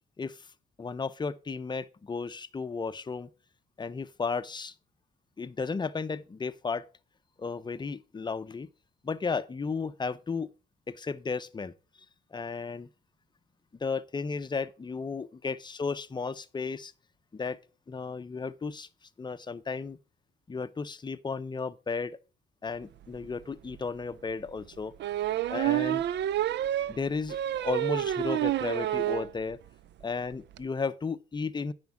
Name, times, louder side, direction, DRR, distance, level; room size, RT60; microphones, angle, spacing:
voice 1, 0.2-0.5 0.8-3.3 3.8-4.7 5.4-6.8 7.4-8.7 9.0-10.5 10.9-11.7 12.3-12.9 13.8-16.9 17.3-17.6 17.9-18.9 19.2-20.0 20.5-22.2 22.6-24.9 25.5-26.0 26.9-29.6 30.0-31.7, left 4 dB, 20° left, 0.6 m, -34 dB
sound 1, 23.2-23.3 23.7-23.8 25.0-29.3 29.7-29.8 30.0-30.1 30.3-30.6, right 13 dB, 65° right, 0.4 m, -29 dB
9.3 x 5.2 x 5.9 m
cardioid pair, 90°, 20 cm